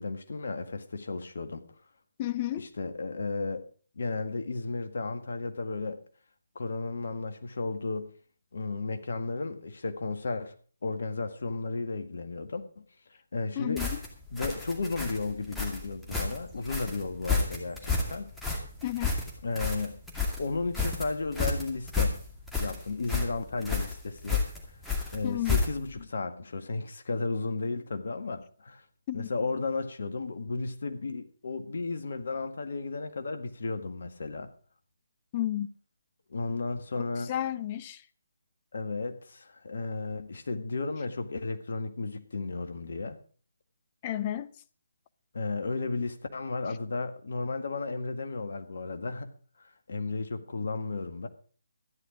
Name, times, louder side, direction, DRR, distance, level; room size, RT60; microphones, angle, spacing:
voice 1, 0.0-1.6 2.6-3.6 3.9-6.0 6.5-8.1 8.5-10.5 10.8-12.8 13.3-13.9 14.3-18.3 19.4-20.0 20.4-22.2 22.6-24.5 25.1-28.8 29.1-34.5 36.3-37.3 38.7-43.2 45.3-49.3 49.6-51.3, left 3 dB, 55° left, 1.7 m, -34 dB
voice 2, 2.2-2.7 13.6-14.0 18.8-19.1 25.2-25.6 29.1-29.3 35.3-35.7 37.3-38.0 44.0-44.5, left 13 dB, 25° left, 0.7 m, -31 dB
sound 1, 13.8-26.0, left 4 dB, 5° left, 2.3 m, -31 dB
13.5 x 10.5 x 5.1 m
figure-of-eight pair, 145°, 0 cm